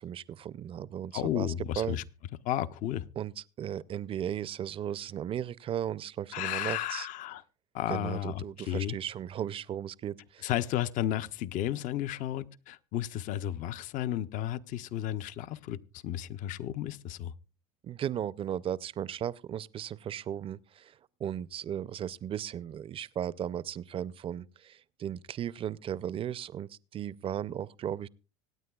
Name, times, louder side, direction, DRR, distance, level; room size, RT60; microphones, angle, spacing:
voice 1, 0.0-2.0 3.2-7.1 7.9-10.5 17.8-28.1, right 10 dB, 35° right, 0.5 m, -36 dB
voice 2, 1.1-2.0 2.5-3.0 6.3-7.4 7.7-9.0 10.4-15.8 16.0-17.3, left 12 dB, 50° left, 0.6 m, -33 dB
25.5 x 9.2 x 2.3 m
supercardioid pair, 95°, 17 cm